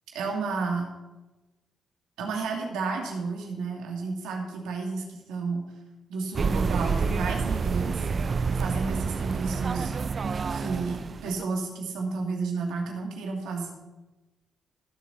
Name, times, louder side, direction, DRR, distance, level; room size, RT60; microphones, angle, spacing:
voice 1, 0.1-0.9 2.2-5.7 6.1-8.0 8.5-9.9 10.5-13.7, right 4 dB, 80° right, 1 dB, 2.5 m, -31 dB
sound 1, 6.3-11.4, right 5 dB, 50° right, 0.5 m, -28 dB
21.0 x 7.2 x 4.2 m, 1.1 s
hypercardioid pair, 50°, 0 cm